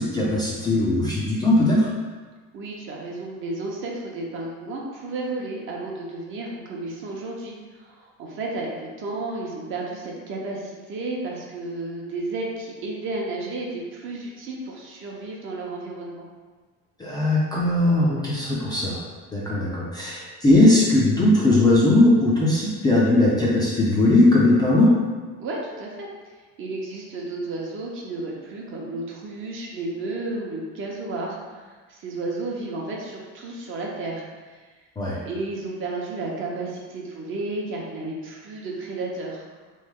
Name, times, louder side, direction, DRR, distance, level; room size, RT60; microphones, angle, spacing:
voice 1, 0.0-1.9 17.0-19.0 19.3-24.9 35.0-35.2, left 1 dB, 15° left, -7 dB, 0.4 m, -19 dB
voice 2, 2.5-16.3 25.4-26.1 26.6-34.6 35.2-39.5, right 2 dB, 40° right, -2 dB, 0.7 m, -32 dB
3.2 x 3.2 x 3.6 m, 1.4 s
cardioid pair, 160°, 31 cm